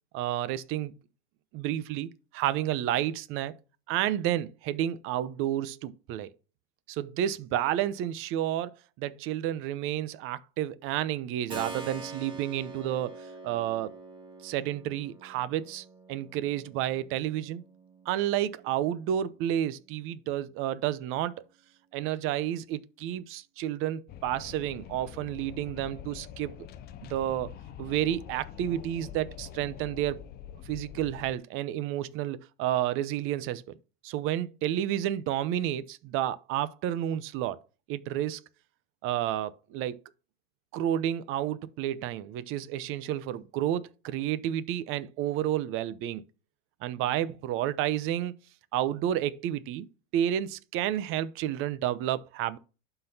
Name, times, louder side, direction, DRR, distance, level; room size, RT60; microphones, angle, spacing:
voice 1, 0.1-0.9 1.5-3.6 3.9-6.3 6.9-13.1 13.4-13.9 14.4-17.6 18.1-21.4 21.9-26.5 27.1-27.5 27.8-30.2 30.6-33.6 34.0-37.6 37.9-38.4 39.0-40.0 40.7-46.2 46.8-48.3 48.7-49.9 50.1-52.6, right 12 dB, 45° right, 0.7 m, -30 dB
Keyboard (musical), 11.5-20.1, right 3 dB, 15° right, 1.8 m, -46 dB
Wind, 24.1-31.4, left 9 dB, 35° left, 0.5 m, -45 dB
11.5 x 4.0 x 2.7 m
supercardioid pair, 120°, 30 cm